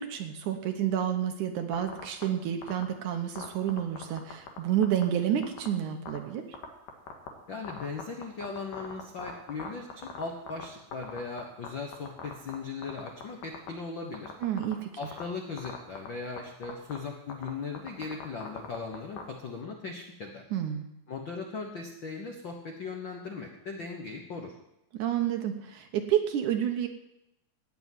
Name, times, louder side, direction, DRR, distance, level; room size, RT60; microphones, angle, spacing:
voice 1, 0.0-6.6 14.4-14.9 20.5-20.9 24.9-26.9, right 10 dB, 70° right, 6 dB, 2.1 m, -29 dB
sound 1, 1.7-2.2 2.6-2.8 3.4-4.6 4.8-5.0 5.4-5.7 6.1-6.2 6.5-7.3 7.6-10.6 10.9-11.7 11.9-12.5 12.8-13.7 14.1-14.7 15.0-15.2 15.6-16.1 16.4-16.5 16.6-17.0 17.3-19.2, left 7 dB, 65° left, 3.1 m, -40 dB
voice 2, 7.5-14.3 15.0-20.4 21.1-24.5, left 4 dB, 80° left, 2 dB, 1.0 m, -38 dB
17.0 x 6.0 x 9.3 m, 0.87 s
omnidirectional pair, 4.3 m